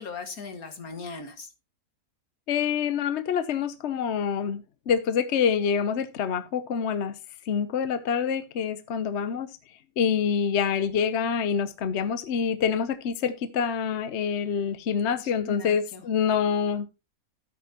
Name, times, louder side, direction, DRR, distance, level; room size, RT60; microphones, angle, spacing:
voice 1, 0.0-1.5 15.4-16.0, left 5 dB, 75° left, 7 dB, 2.2 m, -38 dB
voice 2, 2.5-7.1 7.5-9.5 10.0-16.9, left 7 dB, 55° left, 12 dB, 0.9 m, -26 dB
13.0 x 8.4 x 2.9 m, 0.27 s
omnidirectional pair, 1.5 m